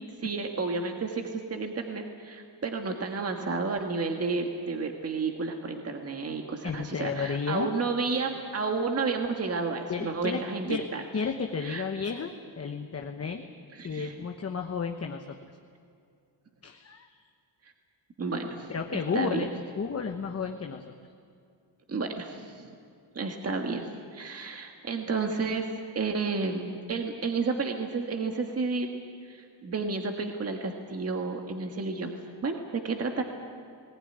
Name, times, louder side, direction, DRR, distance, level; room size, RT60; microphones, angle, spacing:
voice 1, 0.2-11.0 11.6-11.8 13.8-14.1 18.2-19.5 21.9-22.7 23.1-25.7 25.9-28.9 29.3-32.1 32.4-33.2, right 4 dB, 35° right, 3 dB, 1.6 m, -31 dB
voice 2, 6.6-7.7 9.9-10.4 10.7-10.8 11.1-13.5 13.8-15.4 16.6-17.1 18.7-19.5 19.8-20.8, left 5 dB, 35° left, 3 dB, 1.1 m, -32 dB
20.0 x 18.5 x 10.0 m, 2.4 s
wide cardioid pair, 150°, 44 cm